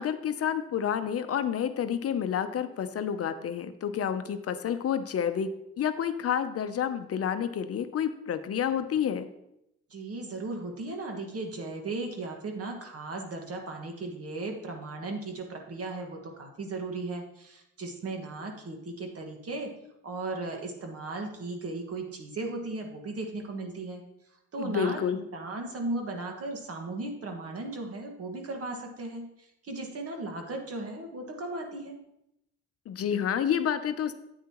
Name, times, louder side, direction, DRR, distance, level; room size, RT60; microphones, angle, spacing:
voice 1, 0.0-5.5 5.8-9.3 24.6-25.2 32.9-34.1, left 8 dB, 50° left, 10 dB, 0.7 m, -29 dB
voice 2, 9.9-19.7 20.0-24.0 24.5-25.0 25.3-29.3 29.6-32.0, right 2 dB, 50° right, 3 dB, 1.8 m, -36 dB
9.1 x 8.7 x 3.0 m, 0.83 s
cardioid pair, 90°, 30 cm